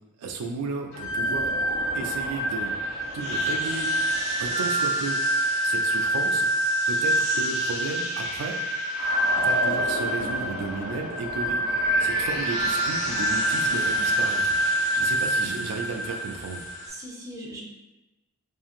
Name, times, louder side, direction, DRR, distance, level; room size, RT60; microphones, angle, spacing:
voice 1, 0.2-1.5 1.9-5.2 5.6-6.6 6.9-8.6 9.3-14.6 14.9-16.6, right 4 dB, 90° right, 3 dB, 0.4 m, -34 dB
sound 1, 0.9-16.9, right 1 dB, 70° left, 0.9 m, -26 dB
voice 2, 15.4-15.7 16.9-17.6, equal, 15° right, -4 dB, 0.5 m, -40 dB
2.8 x 2.5 x 2.4 m, 1.1 s
head